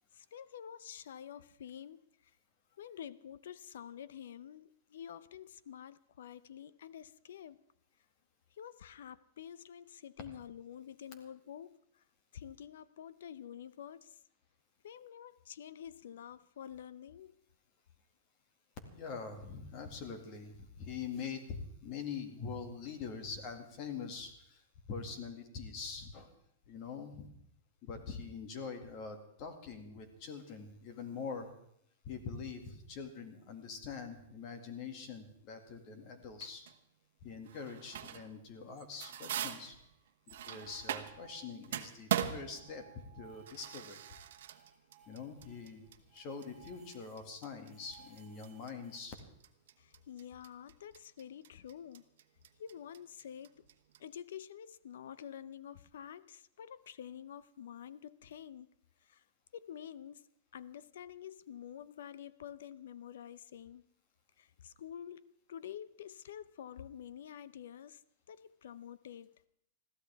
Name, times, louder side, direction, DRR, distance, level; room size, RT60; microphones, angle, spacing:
voice 1, 0.1-2.3 2.8-7.6 8.5-12.0 12.3-14.2 14.8-17.4 49.8-52.0 52.6-53.6 54.0-58.7 59.0-59.2 59.5-63.8 64.4-68.0 68.3-69.4, left 9 dB, 75° left, 18 dB, 0.6 m, -48 dB
voice 2, 18.9-24.6 24.9-26.3 26.7-27.3 27.8-31.5 32.0-36.6 37.2-39.8 40.3-44.0 45.1-49.1, left 5 dB, 35° left, 6 dB, 2.1 m, -44 dB
sound 1, 36.4-36.8 37.5-38.4 38.7-41.3 41.6-54.0, right 11 dB, 70° right, 1.1 m, -41 dB
sound 2, 40.4-42.0 42.2-47.3 47.6-49.0, right 8 dB, 5° right, 3.6 m, -61 dB
21.5 x 14.5 x 3.5 m, 0.72 s
supercardioid pair, 160°, 0 cm